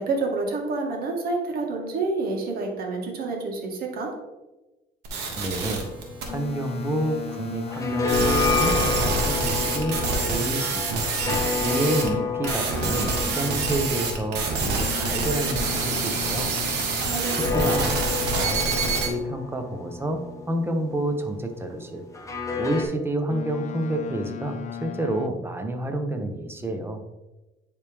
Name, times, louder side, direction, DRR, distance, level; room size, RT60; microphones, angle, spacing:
voice 1, 0.0-4.1 17.1-17.7, right 3 dB, 60° right, 1 dB, 1.7 m, -28 dB
sound 1, 5.0-6.2 8.1-12.1 12.4-19.1, right 4 dB, 85° right, 1.4 m, -26 dB
voice 2, 5.4-5.9 6.3-11.1 11.6-16.5 17.4-17.9 18.4-22.1 22.6-27.0, right 1 dB, 15° right, 6 dB, 0.8 m, -29 dB
sound 2, 5.6-7.2 7.5-16.2 17.1-21.2 22.1-22.8, left 5 dB, 20° left, 1.1 m, -30 dB
Boat Water vehicle, 6.3-10.8 14.8-19.3 23.3-25.3, left 10 dB, 45° left, 0.5 m, -38 dB
9.7 x 3.4 x 3.4 m, 1.1 s
cardioid pair, 110°, 17 cm